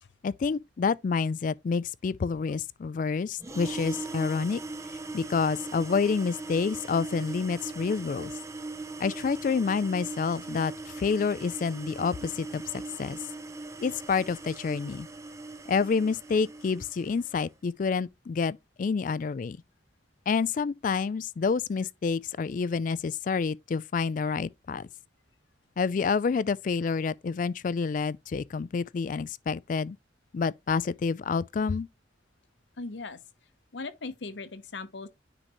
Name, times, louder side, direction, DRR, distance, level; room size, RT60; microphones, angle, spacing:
voice 1, 0.2-4.6 5.1-8.3 9.0-12.6 13.0-13.2 13.8-15.1 15.7-19.6 20.3-24.9 25.8-30.0 30.3-31.9, left 5 dB, 45° left, 0.3 m, -28 dB
sound 1, 3.4-17.3, right 3 dB, 15° right, 0.5 m, -40 dB
voice 2, 32.8-33.2 33.7-35.1, left 3 dB, 75° left, 0.8 m, -38 dB
9.7 x 3.9 x 3.0 m
head